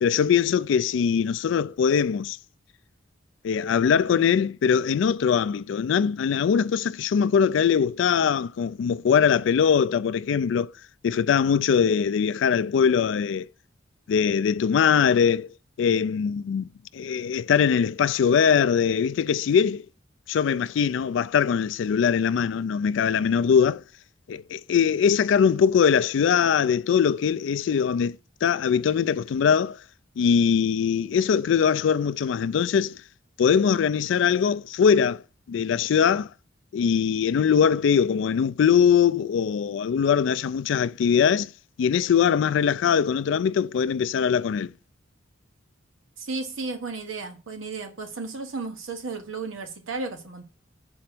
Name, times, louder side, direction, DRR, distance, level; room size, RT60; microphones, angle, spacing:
voice 1, 0.0-2.4 3.4-10.7 11.0-13.5 14.1-15.5 15.8-16.7 16.9-19.9 20.3-23.8 24.3-28.2 28.4-29.8 30.2-33.0 33.4-35.2 35.5-36.3 36.7-41.5 41.8-44.7, left 7 dB, 65° left, 0.3 m, -22 dB
voice 2, 46.2-50.4, right 3 dB, 80° right, 1.3 m, -34 dB
6.6 x 4.3 x 6.0 m
head